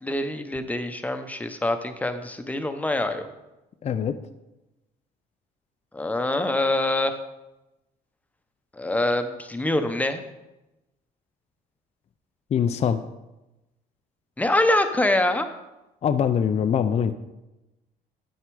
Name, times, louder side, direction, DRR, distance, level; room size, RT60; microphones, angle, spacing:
voice 1, 0.0-3.3 5.9-7.2 8.7-10.2 14.4-15.5, left 1 dB, 10° left, 8 dB, 1.0 m, -25 dB
voice 2, 3.8-4.2 12.5-13.0 16.0-17.1, left 8 dB, 40° left, 9 dB, 0.5 m, -23 dB
9.5 x 8.1 x 4.8 m, 0.99 s
cardioid pair, 110°, 17 cm